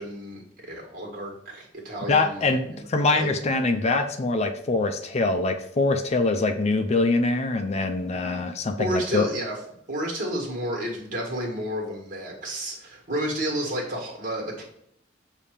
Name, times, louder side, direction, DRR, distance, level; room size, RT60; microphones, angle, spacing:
voice 1, 0.0-3.6 8.1-9.6 9.9-14.6, right 1 dB, 45° right, 0 dB, 1.7 m, -31 dB
voice 2, 2.1-9.3, left 3 dB, 35° left, 6 dB, 0.5 m, -24 dB
6.9 x 2.8 x 5.0 m, 0.71 s
head